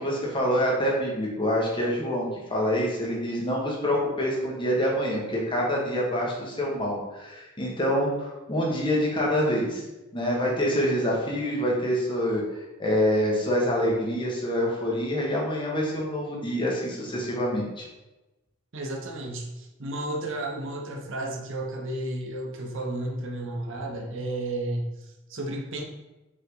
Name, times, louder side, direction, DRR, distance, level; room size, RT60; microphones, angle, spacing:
voice 1, 0.0-9.8 10.1-17.8, equal, 25° left, -3 dB, 1.6 m, -26 dB
voice 2, 18.7-25.8, right 1 dB, 60° right, 2 dB, 0.9 m, -33 dB
6.1 x 4.7 x 3.9 m, 1.0 s
head